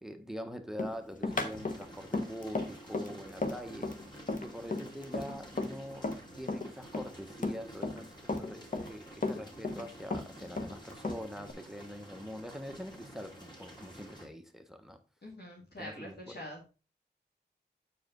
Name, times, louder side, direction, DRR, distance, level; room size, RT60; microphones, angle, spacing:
voice 1, 0.0-3.9 4.4-6.1 6.4-15.0 15.8-16.4, equal, ahead, 1.1 m, -44 dB
Run, 0.8-6.2 6.5-8.0 8.3-9.8 10.1-11.5, left 3 dB, 45° left, 1.1 m, -35 dB
sound 1, 1.3-14.2, right 1 dB, 25° left, 2.8 m, -51 dB
voice 2, 15.2-16.8, left 1 dB, 65° left, 2.3 m, -45 dB
8.1 x 4.8 x 3.9 m
wide cardioid pair, 60°, 18 cm